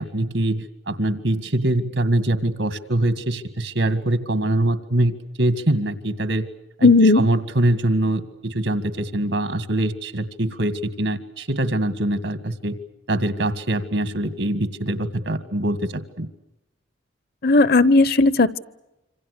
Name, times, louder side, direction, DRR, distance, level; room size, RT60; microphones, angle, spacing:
voice 1, 0.0-6.5 6.8-12.7 13.1-16.3, right 1 dB, 75° right, 11 dB, 2.0 m, -23 dB
voice 2, 6.8-7.2 17.4-18.6, left 3 dB, 55° left, 17 dB, 0.9 m, -15 dB
27.0 x 26.0 x 6.6 m, 0.95 s
head